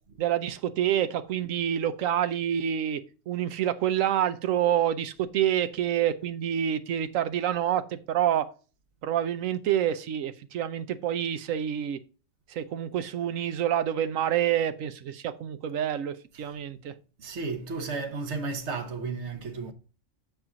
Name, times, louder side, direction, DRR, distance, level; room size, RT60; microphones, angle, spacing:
voice 1, 0.2-8.5 9.0-12.0 12.5-16.9, right 10 dB, 90° right, 1.1 m, -27 dB
voice 2, 17.2-19.7, right 4 dB, 60° right, 1.1 m, -33 dB
7.3 x 4.7 x 3.8 m
omnidirectional pair, 1.4 m